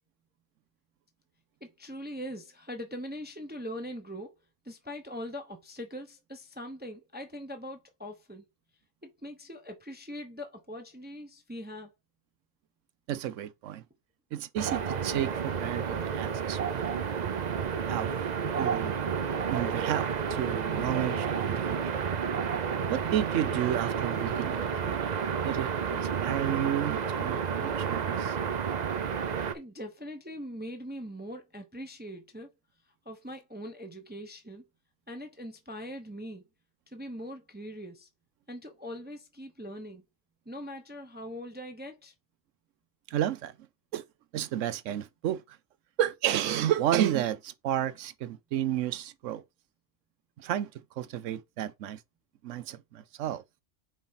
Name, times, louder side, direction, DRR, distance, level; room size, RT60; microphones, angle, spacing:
voice 1, 1.6-4.4 4.6-8.5 9.0-11.9 29.5-32.5 33.0-34.6 35.1-36.4 36.9-38.1 38.5-40.0 40.5-42.1, equal, 10° right, 0.8 m, -41 dB
voice 2, 13.1-13.8 14.3-17.0 17.9-18.1 18.6-19.0 19.5-22.0 22.9-28.4 43.1-43.5 43.9-44.0 44.3-45.6 46.0-49.4 50.4-52.0 52.4-53.4, right 11 dB, 85° right, 1.0 m, -32 dB
sound 1, 14.6-29.5, right 7 dB, 45° right, 0.6 m, -31 dB
4.9 x 3.9 x 5.7 m
omnidirectional pair, 1.3 m